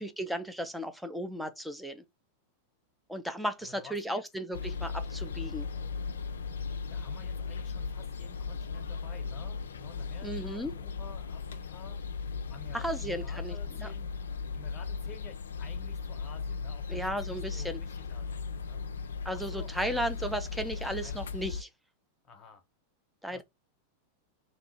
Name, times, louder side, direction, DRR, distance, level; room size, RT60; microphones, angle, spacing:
voice 1, 0.0-2.0 3.1-5.7 10.2-10.7 12.7-13.5 13.8-13.9 16.9-17.8 19.2-21.7 23.2-23.4, equal, ahead, 0.6 m, -35 dB
voice 2, 3.6-4.2 6.9-12.2 12.5-14.1 14.5-18.8 19.3-20.4 21.0-21.3 22.2-22.6 23.3-23.4, left 5 dB, 25° left, 0.9 m, -52 dB
sound 1, 4.5-21.6, left 5 dB, 65° left, 0.3 m, -37 dB
3.1 x 2.6 x 4.1 m
figure-of-eight pair, 90°, 0 cm